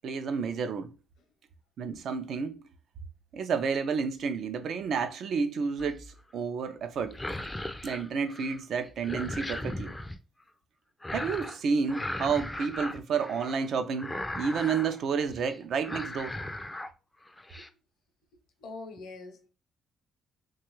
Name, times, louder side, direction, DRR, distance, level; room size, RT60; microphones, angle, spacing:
voice 1, 0.0-0.9 1.8-2.6 3.3-7.2 7.8-10.0 11.1-16.4, right 5 dB, 65° right, 0.5 m, -30 dB
sound 1, 5.8-6.2 7.0-8.6 8.8-10.2 11.0-11.6 11.9-13.7 14.0-15.0 15.3-15.5 15.8-16.9 17.3-17.7, left 1 dB, 10° left, 0.3 m, -37 dB
voice 2, 18.6-19.5, left 3 dB, 80° left, 0.7 m, -43 dB
3.1 x 2.3 x 3.0 m
cardioid pair, 90°, 0 cm